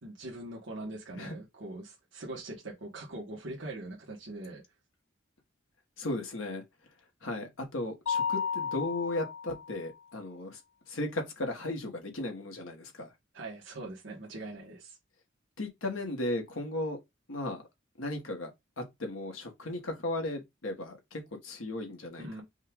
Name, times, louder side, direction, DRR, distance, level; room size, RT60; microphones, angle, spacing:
voice 1, 0.0-4.6 13.3-15.0 22.2-22.4, right 2 dB, 65° right, 1.3 m, -42 dB
voice 2, 6.0-6.6 7.2-10.6 10.9-13.1 15.6-17.0 17.3-17.6 18.0-18.5 18.8-22.4, left 2 dB, 90° left, 1.3 m, -36 dB
Mallet percussion, 8.1-9.8, left 6 dB, 75° left, 0.5 m, -33 dB
5.4 x 2.3 x 3.5 m
head